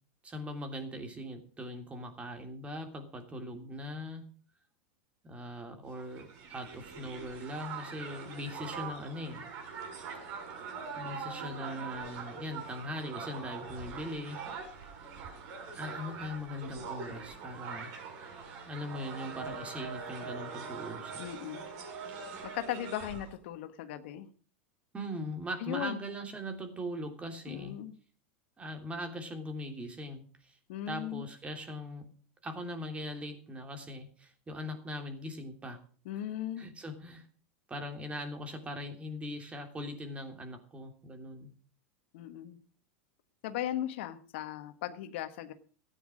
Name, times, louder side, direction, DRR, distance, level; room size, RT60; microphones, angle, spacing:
voice 1, 0.2-4.2 5.2-9.4 10.9-14.4 15.7-17.9 18.7-21.2 24.9-27.8 28.6-30.6 30.9-32.1 32.4-35.8 36.6-37.3 37.7-41.5, equal, 20° right, 5 dB, 3.2 m, -40 dB
Crowd, 6.0-23.3, right 5 dB, 55° right, 6.8 m, -43 dB
voice 2, 21.2-21.7 22.4-24.3 25.6-26.0 27.5-27.9 30.7-31.3 36.0-36.7 42.1-42.6 43.4-45.5, left 12 dB, 70° left, 9 dB, 1.4 m, -37 dB
14.0 x 9.5 x 6.3 m, 0.43 s
hypercardioid pair, 105°, 7 cm